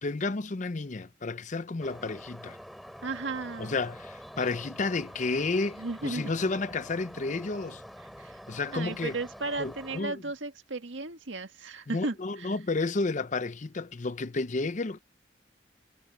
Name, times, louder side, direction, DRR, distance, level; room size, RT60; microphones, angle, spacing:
voice 1, 0.0-2.6 3.6-7.8 8.5-9.2 9.6-10.2 11.9-15.0, left 3 dB, 40° left, 0.6 m, -31 dB
sound 1, 1.8-10.0, equal, ahead, 3.7 m, -46 dB
voice 2, 3.0-3.8 5.8-6.3 8.2-8.4 8.7-12.5, right 3 dB, 90° right, 1.7 m, -35 dB
head